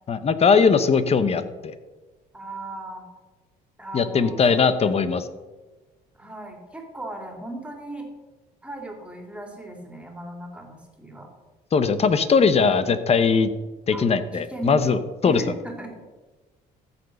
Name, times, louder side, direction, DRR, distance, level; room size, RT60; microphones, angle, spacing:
voice 1, 0.1-1.7 3.9-5.2 11.7-13.5 13.9-15.4, left 5 dB, 35° left, 12 dB, 1.1 m, -20 dB
voice 2, 2.3-3.0 3.8-4.9 6.1-8.1 8.6-11.3 13.9-14.0 14.3-14.8 15.2-16.0, right 2 dB, 5° right, 2 dB, 3.0 m, -37 dB
14.0 x 7.2 x 6.5 m, 1.2 s
cardioid pair, 110°, 17 cm